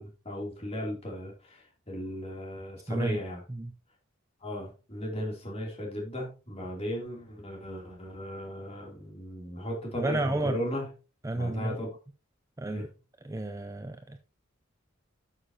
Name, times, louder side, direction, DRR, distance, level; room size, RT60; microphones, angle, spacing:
voice 1, 0.0-3.4 4.4-10.9 11.3-11.9 12.7-12.8, equal, 30° left, 2.9 m, -36 dB
voice 2, 2.9-3.2 3.5-3.7 10.0-10.6 11.2-11.8 12.6-12.9 13.2-14.2, right 2 dB, 15° right, 0.5 m, -31 dB
12.0 x 6.6 x 2.8 m
head